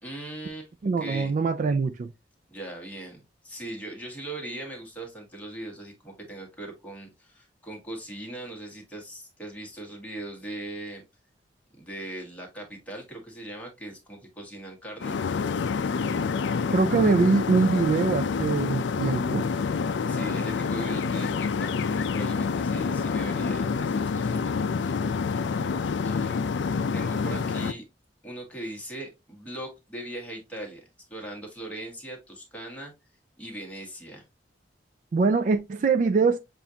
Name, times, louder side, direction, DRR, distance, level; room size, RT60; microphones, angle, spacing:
voice 1, 0.0-0.7 1.0-1.3 2.5-11.0 11.8-15.2 20.1-24.7 26.0-26.3 26.9-27.8 28.2-30.8 31.1-32.9 33.4-34.2, right 1 dB, 10° left, 1.5 m, -39 dB
voice 2, 0.8-2.1 16.7-19.5 35.1-36.4, right 4 dB, 45° right, 0.3 m, -23 dB
sound 1, 15.0-27.7, left 5 dB, 80° left, 0.4 m, -27 dB
7.0 x 2.5 x 2.8 m
head